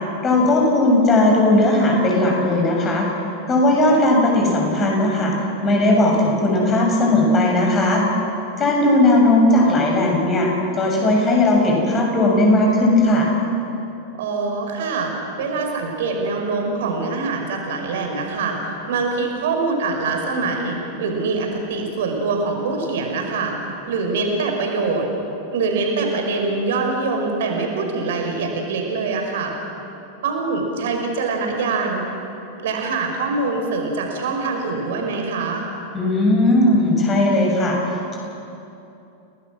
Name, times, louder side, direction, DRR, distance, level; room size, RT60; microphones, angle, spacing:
voice 1, 0.2-3.1 3.5-5.3 5.6-8.0 8.6-13.3 35.9-38.2, left 1 dB, 25° left, -1 dB, 7.1 m, -17 dB
voice 2, 14.2-15.1 15.4-23.5 23.9-25.1 25.5-29.5 30.2-32.0 32.6-35.7, right 3 dB, 55° right, 3 dB, 5.0 m, -24 dB
30.0 x 20.0 x 6.3 m, 2.8 s
figure-of-eight pair, 90°, 0 cm